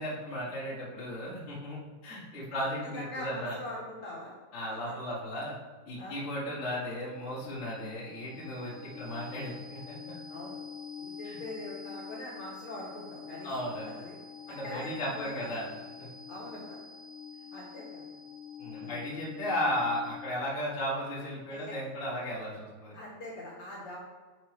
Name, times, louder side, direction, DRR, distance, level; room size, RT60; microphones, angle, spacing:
voice 1, 0.0-3.6 4.5-5.6 5.8-10.2 11.2-11.4 13.4-13.8 14.5-15.6 16.0-16.1 18.6-22.9, equal, 35° left, -8 dB, 1.1 m, -35 dB
voice 2, 2.9-4.3 6.0-6.3 10.3-10.6 11.0-13.5 13.8-14.2 14.5-15.7 16.3-16.8 17.5-18.1 18.8-19.0 21.5-21.8 22.9-24.0, left 1 dB, 55° left, -6 dB, 2.2 m, -42 dB
sound 1, 6.9-20.5, left 7 dB, 85° left, 2.2 m, -46 dB
9.1 x 5.1 x 3.3 m, 1.4 s
omnidirectional pair, 5.0 m